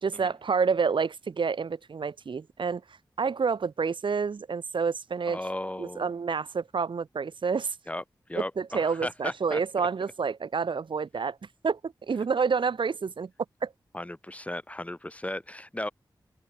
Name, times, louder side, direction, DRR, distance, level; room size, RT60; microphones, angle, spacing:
voice 1, 0.0-2.8 3.2-5.4 5.8-7.7 8.4-11.4 11.6-13.3 13.6-13.7, right 5 dB, 80° right, 2.8 m, -28 dB
voice 2, 5.3-6.1 7.9-8.0 8.3-9.9 13.9-15.9, left 1 dB, 15° left, 7.8 m, -36 dB
wide cardioid pair, 75°, 8 cm